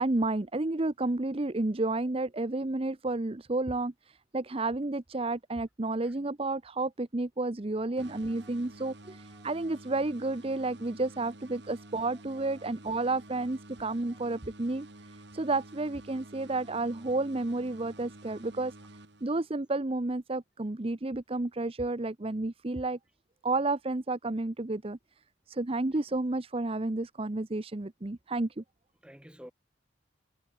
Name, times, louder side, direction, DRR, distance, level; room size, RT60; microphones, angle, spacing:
voice 1, 0.0-18.7 19.2-23.0 23.4-25.0 25.5-28.6, right 2 dB, 30° right, 0.7 m, -31 dB
voice 2, 7.9-8.5 9.0-9.5 11.7-12.2 12.5-12.7 14.1-14.3 29.0-29.5, equal, 5° right, 6.6 m, -55 dB
sound 1, 8.0-19.7, right 1 dB, 60° right, 3.3 m, -50 dB
head